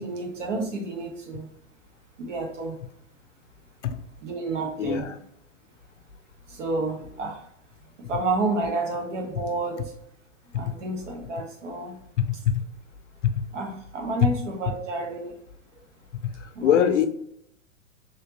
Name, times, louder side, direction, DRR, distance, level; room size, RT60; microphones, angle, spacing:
voice 1, 0.0-1.5 2.2-2.8 4.2-5.1 6.5-7.5 8.0-9.9 10.5-12.0 13.5-15.3 16.5-16.9, right 2 dB, 70° right, 3 dB, 1.1 m, -30 dB
voice 2, 4.8-5.2 12.2-12.3 13.2-13.3 16.6-17.1, left 9 dB, 65° left, 9 dB, 0.6 m, -21 dB
3.3 x 2.8 x 2.8 m, 0.73 s
hypercardioid pair, 115°, 39 cm